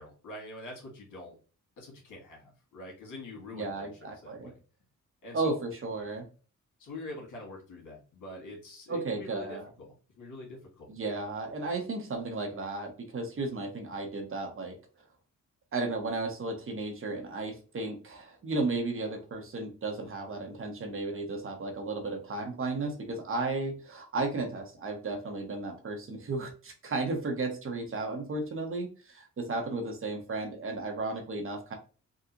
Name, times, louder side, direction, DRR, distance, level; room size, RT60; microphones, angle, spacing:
voice 1, 0.0-1.4 1.8-3.9 4.2-4.6 5.2-5.6 6.8-10.9, left 2 dB, 85° left, -1 dB, 1.7 m, -45 dB
voice 2, 3.5-4.5 5.3-6.3 8.9-9.7 10.9-14.8 15.7-31.7, right 3 dB, 45° right, 4 dB, 0.9 m, -34 dB
3.7 x 2.4 x 2.8 m, 0.36 s
cardioid pair, 115°, 31 cm